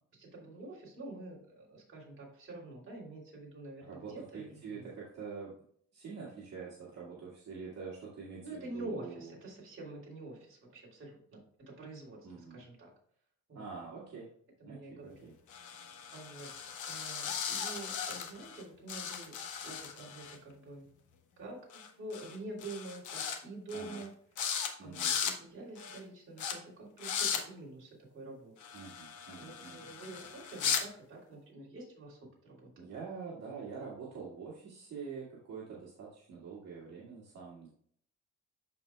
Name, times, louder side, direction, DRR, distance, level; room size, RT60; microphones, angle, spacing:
voice 1, 0.2-4.9 8.4-11.4 11.7-12.9 13.5-13.7 14.6-15.1 15.7-16.5 16.8-19.3 19.6-20.9 21.4-24.1 24.6-28.5 29.4-32.9, right 2 dB, 45° right, -4 dB, 3.1 m, -47 dB
voice 2, 3.8-5.6 5.9-9.3 12.2-12.6 13.5-14.3 14.7-15.3 23.7-24.0 24.8-25.1 28.7-29.8 32.8-37.7, right 5 dB, 60° right, -7 dB, 2.1 m, -45 dB
sound 1, 15.5-18.6 18.9-20.4 21.7-21.9 22.1-22.4 22.6-23.4 23.7-24.1 24.4-24.7 24.9-25.4 25.8-26.0 26.4-26.5 27.0-27.4 28.6-30.8, left 7 dB, 80° left, 1.1 m, -37 dB
13.0 x 4.5 x 2.3 m, 0.62 s
cardioid pair, 150°, 30 cm